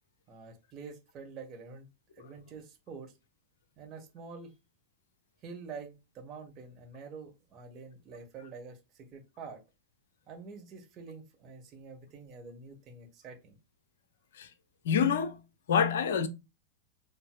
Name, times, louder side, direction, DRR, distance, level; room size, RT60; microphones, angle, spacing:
voice 1, 0.3-1.9 2.2-3.2 3.8-4.5 5.4-9.6 10.3-13.6, right 5 dB, 30° right, 1.3 m, -47 dB
voice 2, 14.8-15.4 15.7-16.3, left 7 dB, 60° left, 0.6 m, -27 dB
7.1 x 2.6 x 2.3 m
figure-of-eight pair, 90°, 0 cm